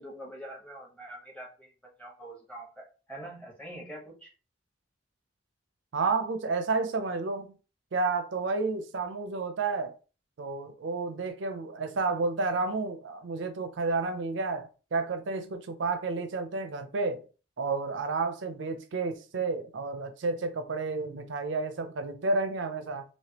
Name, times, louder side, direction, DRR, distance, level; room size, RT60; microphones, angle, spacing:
voice 1, 0.0-1.7 2.0-4.3, right 1 dB, 5° left, 1.0 m, -44 dB
voice 2, 5.9-7.6 7.9-9.9 10.4-17.2 17.6-23.0, right 3 dB, 75° right, 0.5 m, -31 dB
3.3 x 2.7 x 2.8 m
head